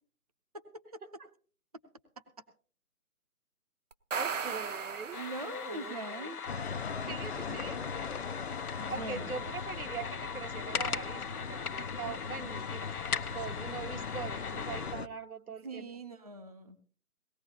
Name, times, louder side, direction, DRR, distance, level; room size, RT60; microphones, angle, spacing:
voice 1, 0.5-1.0 5.1-6.4 7.4-7.7 8.8-9.5 15.6-16.8, right 2 dB, 25° right, 8 dB, 0.6 m, -42 dB
sound 1, 3.9-5.9, right 6 dB, 55° right, 0.8 m, -37 dB
voice 2, 4.2-5.2 5.4-6.3 7.1-7.8 8.9-12.9 13.3-15.9, right 5 dB, 75° right, 8 dB, 1.3 m, -42 dB
sound 2, 5.1-14.9, left 6 dB, 80° left, 1.0 m, -40 dB
sound 3, 6.5-15.1, left 5 dB, 45° left, 0.5 m, -40 dB
19.0 x 15.0 x 2.8 m, 0.42 s
hypercardioid pair, 165°, 44 cm